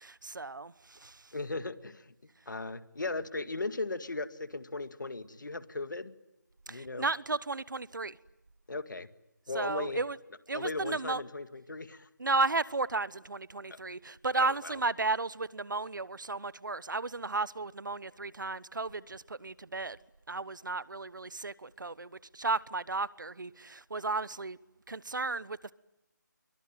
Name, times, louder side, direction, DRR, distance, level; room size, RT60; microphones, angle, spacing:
voice 1, 0.0-1.3 6.7-8.2 9.5-10.2 10.5-11.2 12.2-20.0 20.3-24.6 24.9-25.7, right 3 dB, 80° right, 19 dB, 1.1 m, -34 dB
voice 2, 1.3-2.1 2.5-6.1 6.7-7.1 8.7-9.1 9.5-10.0 10.5-12.1 13.7-13.8 14.4-14.7, left 3 dB, 80° left, 11 dB, 2.0 m, -37 dB
27.0 x 24.0 x 9.2 m, 0.92 s
figure-of-eight pair, 180°, 10 cm